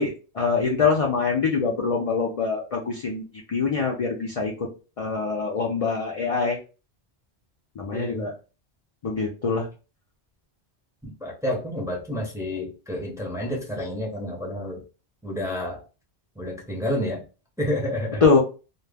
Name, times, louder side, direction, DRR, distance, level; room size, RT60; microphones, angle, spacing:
voice 1, 0.0-3.2 3.5-4.7 5.0-6.6 7.8-8.3 9.0-9.7 18.2-18.4, left 4 dB, 55° left, 0 dB, 0.4 m, -24 dB
voice 2, 7.9-8.2 11.0-14.8 15.2-15.8 16.4-17.2 17.6-18.3, left 1 dB, 5° right, -2 dB, 0.5 m, -29 dB
2.2 x 2.0 x 3.3 m, 0.33 s
omnidirectional pair, 1.1 m